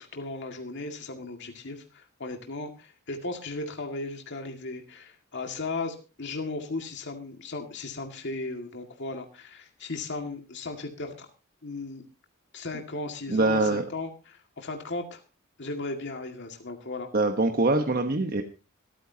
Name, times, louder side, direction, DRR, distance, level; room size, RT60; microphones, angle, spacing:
voice 1, 0.0-11.3 11.6-12.0 12.5-15.2 15.6-17.1, left 3 dB, 55° left, 3 dB, 2.0 m, -36 dB
voice 2, 13.3-13.8 17.1-18.4, right 2 dB, 45° right, 4 dB, 1.1 m, -23 dB
25.5 x 9.2 x 2.8 m, 0.31 s
head